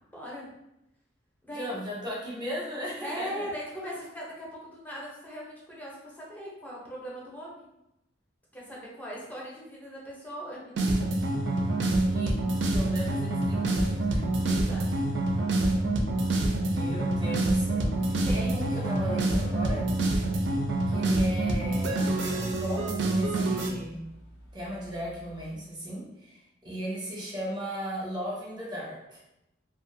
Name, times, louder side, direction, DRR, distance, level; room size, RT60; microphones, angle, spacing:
voice 1, 0.1-0.5 1.4-1.7 3.0-7.7 8.5-10.7 14.4-14.9 15.7-16.1 18.2-18.9 19.5-19.6, equal, 10° left, -5 dB, 0.6 m, -40 dB
voice 2, 1.5-3.5 12.1-12.3 12.7-14.3 16.7-19.9 20.9-24.0 24.5-29.2, equal, 25° right, -5 dB, 0.8 m, -37 dB
sound 1, 10.8-23.7, right 2 dB, 70° right, 0.4 m, -26 dB
sound 2, 14.7-25.4, equal, 65° left, 0.8 m, -51 dB
2.4 x 2.3 x 2.5 m, 0.87 s
head